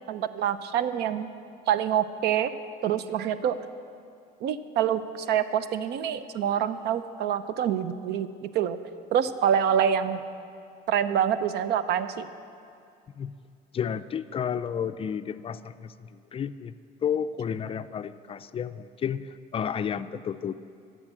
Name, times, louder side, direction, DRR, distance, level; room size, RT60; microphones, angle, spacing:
voice 1, 0.1-1.3 1.7-2.5 2.8-3.6 4.4-8.8 9.1-10.2 10.9-12.3, right 9 dB, 80° right, 13 dB, 0.5 m, -26 dB
voice 2, 13.7-16.7 17.0-20.5, left 8 dB, 35° left, 12 dB, 0.4 m, -31 dB
13.5 x 6.6 x 7.4 m, 2.5 s
cardioid pair, 110°, 17 cm